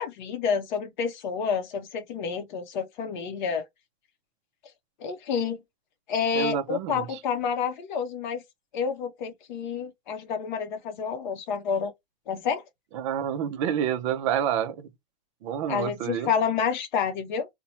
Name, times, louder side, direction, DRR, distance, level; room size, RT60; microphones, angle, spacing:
voice 1, 0.0-3.6 5.0-5.6 6.1-8.4 8.7-11.9 12.3-12.6 15.7-17.5, left 6 dB, 50° left, 0.7 m, -29 dB
voice 2, 6.3-7.2 12.9-14.9 15.4-16.3, right 9 dB, 30° right, 0.4 m, -28 dB
2.9 x 2.1 x 2.6 m
hypercardioid pair, 135°, 31 cm